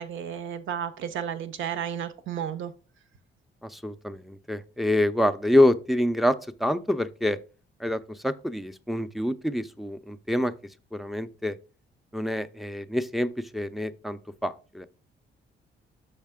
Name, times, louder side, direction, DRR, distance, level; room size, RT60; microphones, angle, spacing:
voice 1, 0.0-2.7, right 9 dB, 75° right, 0.8 m, -32 dB
voice 2, 3.6-7.4 7.8-10.5 10.9-11.6 12.1-14.9, left 1 dB, ahead, 0.5 m, -26 dB
6.5 x 5.5 x 3.6 m
cardioid pair, 90°, 20 cm